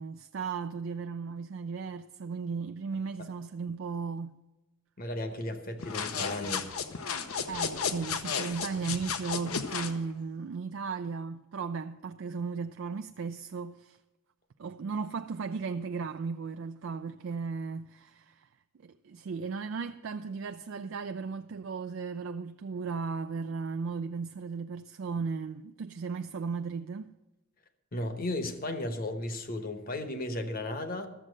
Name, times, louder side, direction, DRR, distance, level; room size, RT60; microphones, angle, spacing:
voice 1, 0.0-4.4 7.5-14.0 14.6-18.5 18.8-27.1, right 5 dB, 60° right, 0.4 m, -36 dB
voice 2, 5.0-6.7 27.9-31.1, left 1 dB, 40° left, 1.0 m, -34 dB
sound 1, 5.8-10.0, left 6 dB, 85° left, 0.8 m, -33 dB
12.5 x 7.4 x 6.4 m
head